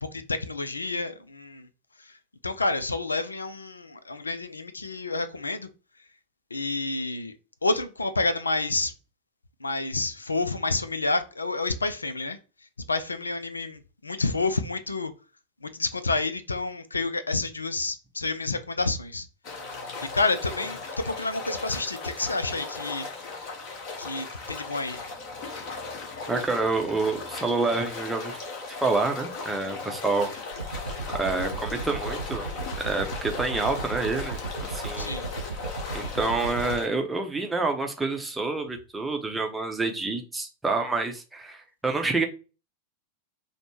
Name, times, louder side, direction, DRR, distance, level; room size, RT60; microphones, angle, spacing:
voice 1, 0.0-1.7 2.0-2.2 2.4-5.7 6.5-7.3 7.6-8.9 9.6-12.4 12.9-15.1 15.6-19.3 20.1-23.1 24.0-25.0 35.0-35.2, left 3 dB, 80° left, 0.3 m, -29 dB
sound 1, 19.4-36.9, left 3 dB, 40° left, 1.1 m, -37 dB
voice 2, 26.3-28.4 28.7-30.3 31.1-32.5 32.8-35.1 35.9-42.3, right 3 dB, 10° right, 0.7 m, -28 dB
sound 2, 30.5-36.8, right 3 dB, 75° right, 0.4 m, -35 dB
5.1 x 2.1 x 3.0 m
figure-of-eight pair, 90°, 0 cm